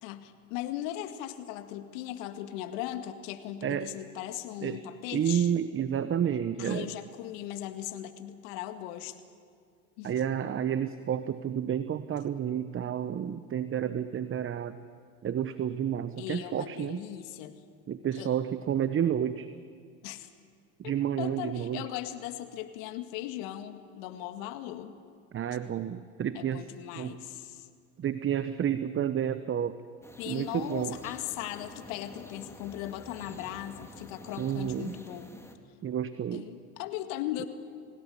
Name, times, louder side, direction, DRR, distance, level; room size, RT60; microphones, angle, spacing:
voice 1, 0.0-5.5 6.6-9.2 10.0-10.1 16.2-17.6 18.2-18.3 20.0-20.3 21.2-25.0 26.4-27.7 30.2-35.3 36.3-37.5, left 12 dB, 65° left, 9 dB, 2.0 m, -38 dB
voice 2, 3.6-3.9 4.6-4.8 5.1-6.9 10.0-14.8 15.2-17.0 17.9-19.5 20.8-21.8 25.3-26.6 26.9-27.2 28.0-29.8 30.2-31.0 34.4-35.0 35.8-36.5, right 9 dB, 30° right, 13 dB, 1.0 m, -30 dB
sound 1, 30.0-35.6, left 1 dB, 5° left, 2.7 m, -49 dB
26.5 x 17.5 x 10.0 m, 2.1 s
hypercardioid pair, 85°, 41 cm